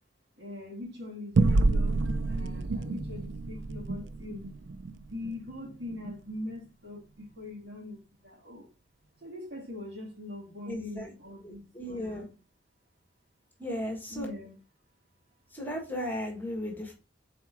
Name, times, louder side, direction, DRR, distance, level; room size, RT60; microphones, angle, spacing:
voice 1, 0.4-2.0 2.2-4.4 5.0-8.0 8.2-8.7 9.2-12.3 14.1-14.5, left 2 dB, 55° right, -1 dB, 2.9 m, -42 dB
sound 1, 1.3-6.2, right 3 dB, 75° right, 0.5 m, -29 dB
voice 2, 10.7-11.1 11.4-12.3 13.6-14.3 15.5-16.9, left 1 dB, 10° left, 1 dB, 1.5 m, -35 dB
4.6 x 4.3 x 5.9 m, 0.32 s
head